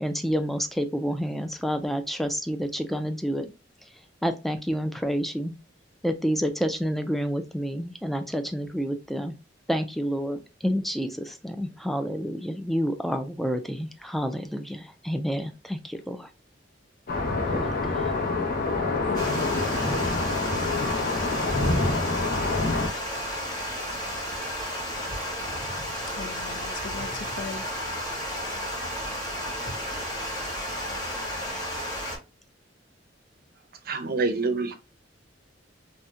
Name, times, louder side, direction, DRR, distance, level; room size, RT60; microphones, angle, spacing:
voice 1, 0.0-3.5 4.2-5.6 6.0-9.3 9.7-16.3 17.5-18.1, equal, ahead, 0.3 m, -29 dB
sound 1, 17.1-22.9, left 3 dB, 50° left, 0.7 m, -26 dB
voice 2, 19.1-19.8 20.5-21.0 26.1-27.6, left 5 dB, 80° left, 0.5 m, -40 dB
Water, 19.1-32.2, equal, 20° left, 1.3 m, -32 dB
voice 3, 33.9-34.7, right 3 dB, 55° right, 0.6 m, -26 dB
2.7 x 2.1 x 3.5 m
head